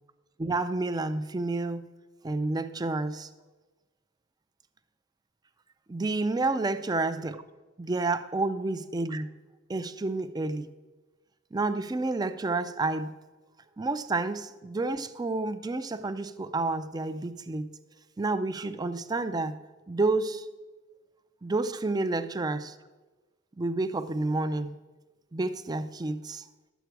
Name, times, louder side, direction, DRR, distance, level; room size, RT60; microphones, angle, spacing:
voice 1, 0.4-1.9 2.2-3.3 5.9-7.4 7.8-9.3 9.7-10.7 11.5-13.1 13.8-17.7 18.2-19.6 19.9-20.5 21.4-22.7 23.6-24.7 25.3-26.4, right 2 dB, 20° right, 12 dB, 0.4 m, -29 dB
11.5 x 8.1 x 4.6 m, 1.2 s
head